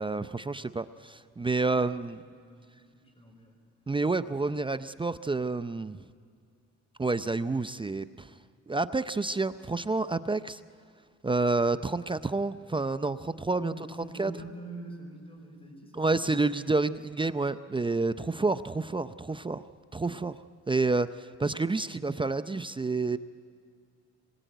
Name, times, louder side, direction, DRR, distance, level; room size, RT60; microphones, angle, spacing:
voice 1, 0.0-2.2 3.9-6.0 7.0-8.3 8.7-10.6 11.2-13.7 14.2-14.3 15.9-19.6 19.9-20.4 20.7-23.2, right 3 dB, 15° right, 12 dB, 0.6 m, -29 dB
voice 2, 2.2-3.6 13.6-16.9, right 1 dB, 20° left, 4 dB, 5.7 m, -45 dB
26.5 x 21.0 x 9.2 m, 2.2 s
cardioid pair, 90°, 30 cm